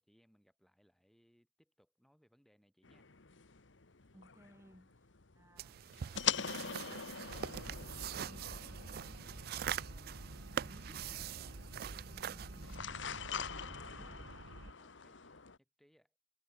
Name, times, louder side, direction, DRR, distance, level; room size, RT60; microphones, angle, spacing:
voice 1, 0.0-3.1 14.8-16.2, equal, ahead, 4.4 m, -71 dB
sound 1, 2.8-15.6, left 7 dB, 65° left, 1.3 m, -44 dB
voice 2, 4.1-5.1 5.3-13.0 13.3-14.3, equal, 15° right, 4.2 m, -63 dB
sound 2, 5.6-12.8, right 9 dB, 50° right, 0.3 m, -43 dB
sound 3, 7.3-14.7, right 1 dB, 80° right, 2.0 m, -50 dB
head